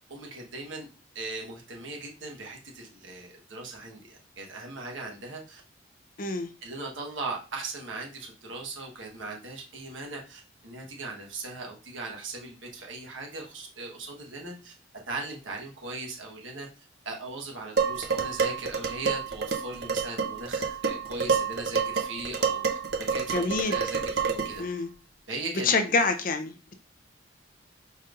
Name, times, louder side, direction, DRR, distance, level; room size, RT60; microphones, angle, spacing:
voice 1, 0.1-0.9 1.1-5.6 6.6-14.7 15.1-16.7 17.0-22.8 23.1-24.6 25.3-25.9, right 3 dB, 75° right, 0 dB, 1.2 m, -38 dB
voice 2, 6.2-6.5 23.3-23.8 24.6-24.9 25.6-26.7, left 3 dB, 45° left, 8 dB, 0.6 m, -26 dB
Dishes pots and pans, 17.8-24.6, right 5 dB, 55° right, 0.7 m, -28 dB
5.0 x 4.1 x 2.5 m, 0.33 s
head